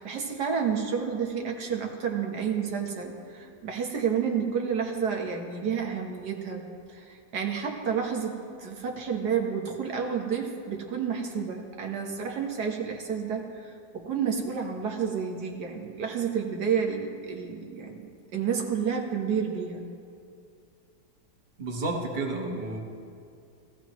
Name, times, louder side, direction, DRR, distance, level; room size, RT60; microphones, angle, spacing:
voice 1, 0.0-6.6 6.9-18.0 18.3-19.8, right 6 dB, 85° right, 1 dB, 1.8 m, -30 dB
voice 2, 21.6-22.8, right 2 dB, 30° right, 0 dB, 1.4 m, -31 dB
18.5 x 14.5 x 3.1 m, 2.5 s
omnidirectional pair, 1.7 m